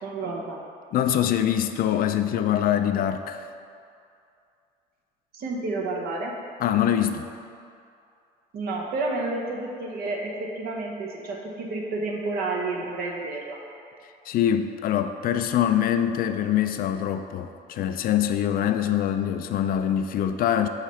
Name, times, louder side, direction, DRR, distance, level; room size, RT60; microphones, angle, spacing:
voice 1, 0.0-0.6 5.3-6.3 8.5-13.6, right 2 dB, 65° right, -1 dB, 1.0 m, -30 dB
voice 2, 0.9-3.5 6.6-7.3 14.3-20.7, left 10 dB, 60° left, 8 dB, 0.4 m, -24 dB
6.4 x 3.2 x 5.5 m, 2.5 s
cardioid pair, 110°, 17 cm